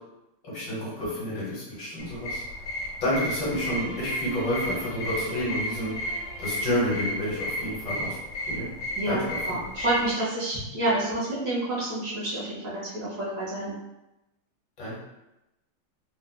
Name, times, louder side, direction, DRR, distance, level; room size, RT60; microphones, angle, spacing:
voice 1, 0.4-2.4 3.0-6.1 6.4-8.2 8.5-8.7 9.0-9.6 14.8-15.0, left 1 dB, 60° left, -7 dB, 1.8 m, -29 dB
sound 1, 2.0-10.1, equal, 75° left, 1.6 m, -33 dB
Bowed string instrument, 3.1-8.0, right 1 dB, 70° right, 2.0 m, -47 dB
voice 2, 9.0-13.7, right 1 dB, 55° right, -8 dB, 1.0 m, -29 dB
4.1 x 2.3 x 2.2 m, 0.95 s
omnidirectional pair, 2.3 m